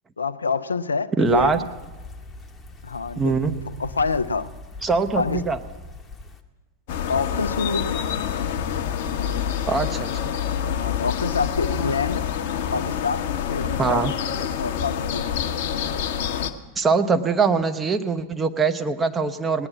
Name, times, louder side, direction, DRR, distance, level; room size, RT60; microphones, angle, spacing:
voice 1, 0.2-1.7 2.8-4.5 5.2-5.5 7.1-8.0 10.7-12.3 12.7-14.1 14.6-15.4, left 4 dB, 75° left, 11 dB, 0.4 m, -27 dB
sound 1, 1.2-6.4, left 2 dB, 15° left, 1.0 m, -41 dB
voice 2, 1.2-1.6 3.2-3.5 4.8-5.6 9.7-10.3 13.8-14.1 16.8-19.7, right 5 dB, 15° right, 8 dB, 0.8 m, -22 dB
sound 2, 6.9-16.5, left 8 dB, 50° left, 0.8 m, -27 dB
19.0 x 9.7 x 7.3 m, 1.2 s
figure-of-eight pair, 90°, 0 cm